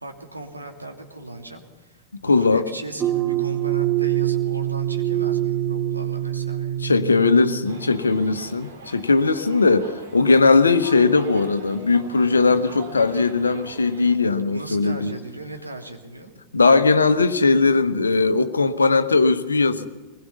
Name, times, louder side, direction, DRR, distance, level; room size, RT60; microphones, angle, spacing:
voice 1, 0.0-6.7 14.5-16.3, right 2 dB, 85° right, 2 dB, 2.9 m, -38 dB
voice 2, 2.2-2.6 6.8-15.1 16.5-19.9, left 4 dB, 75° left, 12 dB, 1.2 m, -19 dB
sound 1, 3.0-8.2, right 12 dB, 25° right, 1.8 m, -25 dB
sound 2, 7.6-14.2, right 3 dB, 65° right, 4.1 m, -42 dB
23.0 x 21.0 x 5.7 m, 1.2 s
figure-of-eight pair, 90°, 0 cm